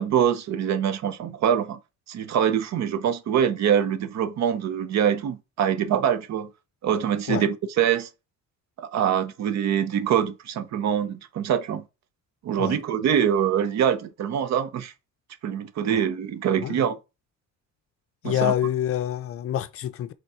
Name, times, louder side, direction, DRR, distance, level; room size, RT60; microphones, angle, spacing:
voice 1, 0.0-1.8 2.1-6.5 6.8-8.1 8.8-11.8 12.4-14.9 15.4-17.0 18.2-18.5, right 9 dB, 55° right, 0.8 m, -24 dB
voice 2, 18.2-20.1, left 11 dB, 45° left, 0.5 m, -27 dB
5.2 x 3.9 x 4.7 m
cardioid pair, 150°, 32 cm